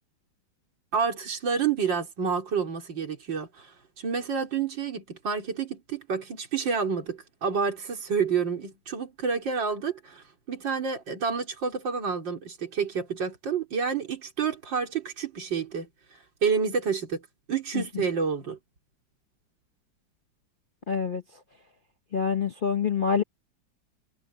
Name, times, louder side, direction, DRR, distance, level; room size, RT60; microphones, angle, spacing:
voice 1, 0.9-17.2 17.5-18.6, right 6 dB, 70° right, 4.1 m, -29 dB
voice 2, 20.9-21.2 22.1-23.2, left 6 dB, 60° left, 0.5 m, -26 dB
omnidirectional pair, 2.1 m